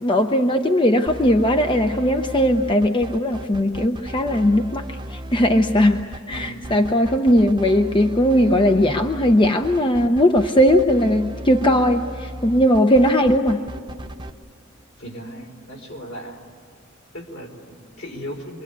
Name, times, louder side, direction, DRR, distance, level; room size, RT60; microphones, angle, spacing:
voice 1, 0.0-13.6, equal, 25° left, 5 dB, 0.7 m, -18 dB
sound 1, 1.1-14.3, right 1 dB, 25° right, 0.8 m, -35 dB
voice 2, 6.3-6.7 15.0-16.4 17.1-18.6, equal, 70° left, 1 dB, 4.5 m, -36 dB
26.0 x 23.5 x 8.4 m, 2.1 s
head